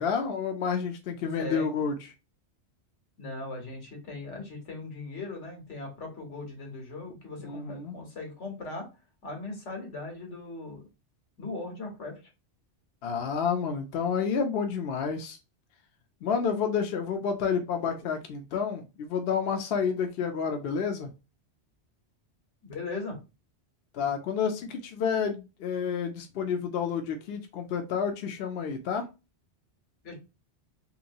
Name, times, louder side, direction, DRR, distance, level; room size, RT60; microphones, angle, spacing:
voice 1, 0.0-2.0 7.4-8.0 13.0-15.4 16.2-21.1 23.9-29.0, left 6 dB, 65° left, 5 dB, 0.8 m, -29 dB
voice 2, 1.4-1.7 3.2-8.9 9.2-10.9 11.4-12.2 22.6-23.2 30.0-30.1, left 3 dB, 80° left, 2 dB, 1.5 m, -39 dB
3.1 x 2.9 x 2.6 m, 0.28 s
omnidirectional pair, 1.2 m